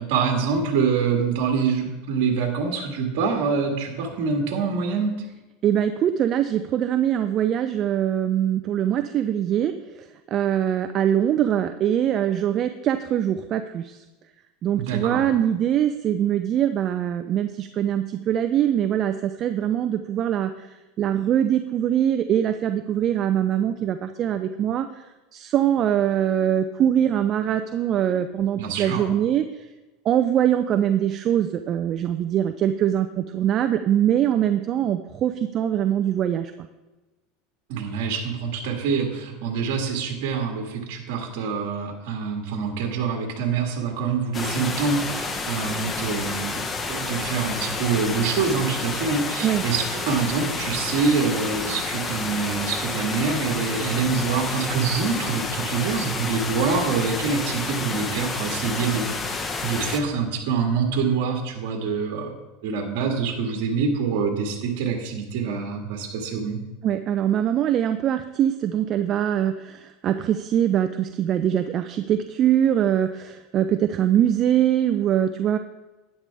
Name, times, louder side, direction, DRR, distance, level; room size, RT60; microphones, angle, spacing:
voice 1, 0.0-5.1 14.8-15.2 28.6-29.0 37.7-62.3 62.6-66.6, right 5 dB, 65° right, 1 dB, 1.9 m, -25 dB
voice 2, 5.6-14.0 14.6-25.1 25.3-29.7 30.0-36.7 49.4-49.6 66.8-75.6, right 10 dB, 40° right, 9 dB, 0.5 m, -23 dB
sound 1, 44.3-60.0, left 3 dB, 20° left, 1.1 m, -30 dB
11.5 x 9.9 x 3.5 m, 1.1 s
supercardioid pair, 125°, 0 cm